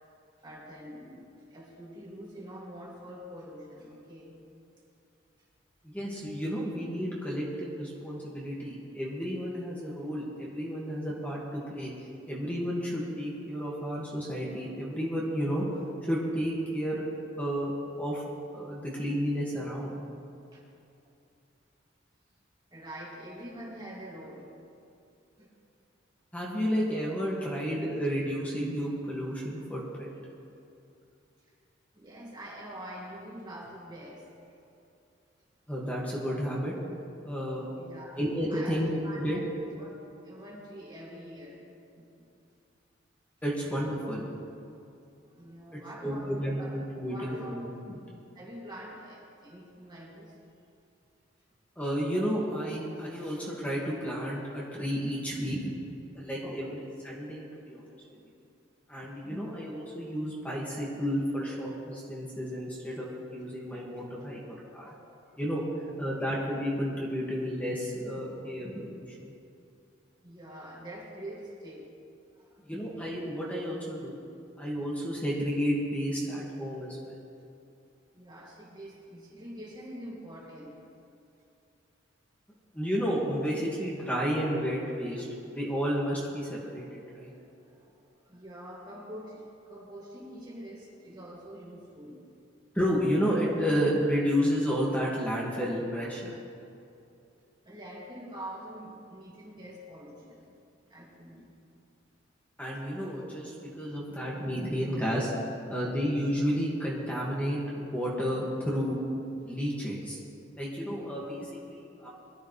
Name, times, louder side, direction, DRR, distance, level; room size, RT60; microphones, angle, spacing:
voice 1, 0.4-4.4 20.5-20.6 22.7-24.5 25.4-25.5 31.9-34.3 37.8-38.2 38.5-39.2 39.7-39.9 40.2-42.3 45.2-46.8 47.1-47.8 48.3-50.3 56.4-56.6 70.2-71.9 72.3-72.6 78.1-80.8 87.2-92.2 97.6-100.6 100.9-101.6, equal, 25° right, -4 dB, 2.5 m, -45 dB
voice 2, 5.8-11.9 12.3-15.7 16.0-17.0 17.4-17.7 18.0-18.2 18.5-20.0 26.3-30.1 35.7-36.7 37.2-37.7 38.2-39.4 43.4-44.3 45.7-48.0 51.8-55.7 56.2-56.7 57.0-57.8 58.9-64.4 64.7-65.0 65.4-65.6 66.0-69.2 72.6-74.2 74.6-77.1 82.7-86.8 87.1-87.3 92.7-96.3 102.6-105.3 105.7-109.0 109.4-110.2 110.6-112.1, equal, 10° left, -6 dB, 2.1 m, -31 dB
22.5 x 13.0 x 3.4 m, 2.6 s
head